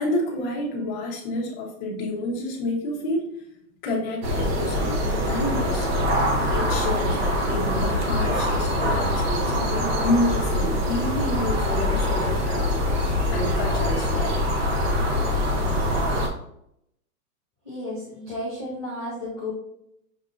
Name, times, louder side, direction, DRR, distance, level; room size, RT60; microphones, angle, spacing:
voice 1, 0.0-3.4 3.8-5.9 6.5-14.3, left 1 dB, 20° left, -2 dB, 0.9 m, -29 dB
sound 1, 4.2-16.3, left 1 dB, 40° right, 0.8 m, -24 dB
voice 2, 17.6-19.5, left 1 dB, 5° right, -14 dB, 0.4 m, -33 dB
6.5 x 2.7 x 2.5 m, 0.75 s
hypercardioid pair, 160°, 46 cm